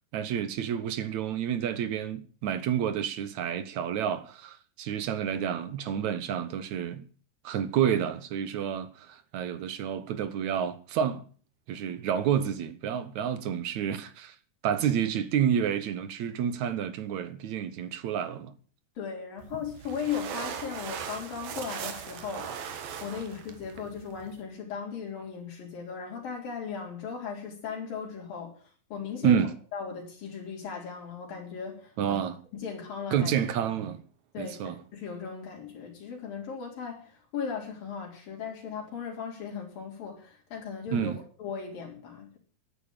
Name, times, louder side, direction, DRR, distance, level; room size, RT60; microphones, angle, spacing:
voice 1, 0.1-7.1 7.4-11.2 11.7-14.4 14.6-18.5 29.2-29.5 32.0-32.4 33.1-34.0 34.4-34.8 40.9-41.2, right 8 dB, 65° right, 2.2 m, -29 dB
voice 2, 19.0-29.5 29.7-32.2 32.5-33.3 34.3-42.4, left 6 dB, 85° left, 5.3 m, -37 dB
sound 1, 19.4-24.4, right 7 dB, 80° right, 3.4 m, -39 dB
12.5 x 9.3 x 8.8 m
omnidirectional pair, 3.9 m